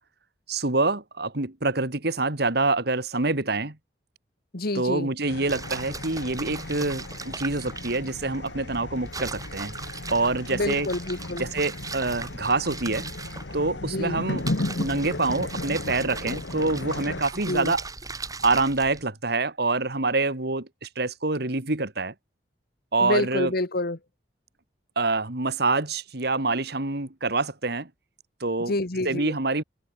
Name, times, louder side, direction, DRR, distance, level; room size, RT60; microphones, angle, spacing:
voice 1, 0.5-3.8 4.8-9.7 10.1-10.9 11.4-13.1 13.5-14.5 14.8-17.8 18.4-22.1 22.9-23.5 25.0-27.9 28.4-28.7 29.0-29.6, right 3 dB, 65° right, 2.4 m, -26 dB
voice 2, 4.5-5.1 10.5-11.5 13.8-14.2 17.5-17.7 23.0-24.0 28.6-29.3, left 2 dB, 60° left, 1.8 m, -28 dB
sound 1, 5.3-17.2, left 2 dB, 80° left, 1.5 m, -35 dB
sound 2, 5.5-19.0, right 3 dB, 20° right, 2.8 m, -39 dB
head